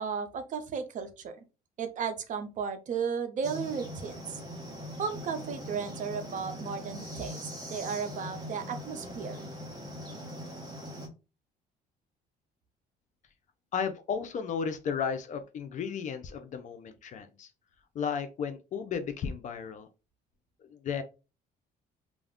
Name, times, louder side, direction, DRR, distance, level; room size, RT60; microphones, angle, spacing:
voice 1, 0.0-1.4 1.8-4.4 5.0-7.4 7.7-9.5, right 6 dB, 50° right, 0.5 m, -34 dB
sound 1, 3.4-11.1, equal, 25° right, 0.8 m, -41 dB
voice 2, 13.7-17.5 17.9-19.9 20.7-21.0, left 6 dB, 45° left, 0.4 m, -34 dB
2.3 x 2.1 x 3.5 m
cardioid pair, 110°, 17 cm